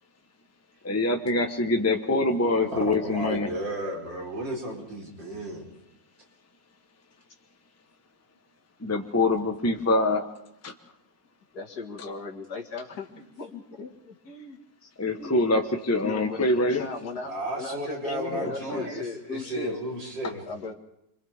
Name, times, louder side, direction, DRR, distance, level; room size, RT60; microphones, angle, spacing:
voice 1, 0.8-3.5 8.8-10.2 10.6-10.7 15.0-16.9 18.3-18.9, left 2 dB, 10° left, 4 dB, 1.1 m, -25 dB
voice 2, 2.7-5.7 13.1-13.2 17.2-20.4, right 1 dB, 85° right, -2 dB, 5.1 m, -33 dB
voice 3, 11.5-13.1 13.4-14.9 15.2-15.3 16.0-16.5 16.8-19.8 20.5-20.7, left 4 dB, 60° left, 1 dB, 2.5 m, -37 dB
28.0 x 25.0 x 3.7 m, 0.81 s
omnidirectional pair, 2.0 m